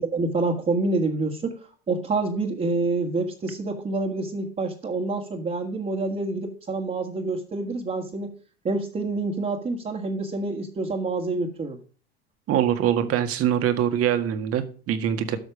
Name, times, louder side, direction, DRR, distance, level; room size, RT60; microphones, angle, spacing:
voice 1, 0.0-1.6 1.9-8.3 8.6-11.8, right 3 dB, 25° right, -2 dB, 1.9 m, -27 dB
voice 2, 12.5-15.4, right 10 dB, 45° right, 10 dB, 1.8 m, -23 dB
12.5 x 6.3 x 4.8 m, 0.41 s
hypercardioid pair, 90°, 31 cm